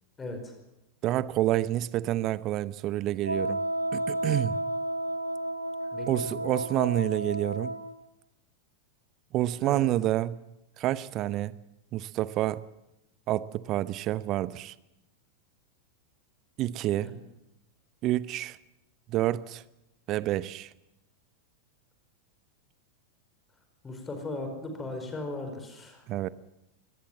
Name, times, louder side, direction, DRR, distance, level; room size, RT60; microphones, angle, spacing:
voice 1, 0.2-0.5 5.9-6.4 9.6-9.9 17.0-17.1 23.8-26.0, left 2 dB, 15° left, 5 dB, 4.8 m, -37 dB
voice 2, 1.0-3.6 3.9-4.6 6.1-7.7 9.3-10.4 10.8-11.5 11.9-12.6 13.3-14.7 16.6-17.1 18.0-18.6 19.1-19.6 20.1-20.7 26.1-26.3, right 14 dB, 35° right, 18 dB, 0.8 m, -28 dB
Wind instrument woodwind instrument, 3.2-8.0, right 1 dB, 85° right, 1.4 m, -32 dB
23.5 x 19.0 x 7.4 m, 0.89 s
figure-of-eight pair, 90°, 0 cm